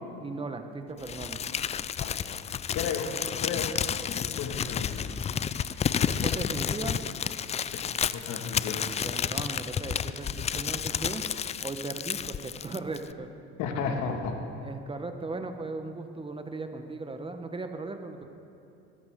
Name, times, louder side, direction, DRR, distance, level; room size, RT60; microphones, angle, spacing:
voice 1, 0.2-1.4 6.0-7.0 9.0-11.2 11.6-13.3 14.6-18.3, right 3 dB, 20° right, 6 dB, 1.1 m, -37 dB
Crumpling crinkling, 1.0-13.1, left 8 dB, 25° left, 0.3 m, -31 dB
voice 2, 2.7-3.2 3.4-3.7 4.2-5.0 7.7-8.8 13.6-14.4, left 6 dB, 65° left, 4 dB, 1.9 m, -33 dB
21.0 x 14.0 x 3.7 m, 2.8 s
supercardioid pair, 90°, 30 cm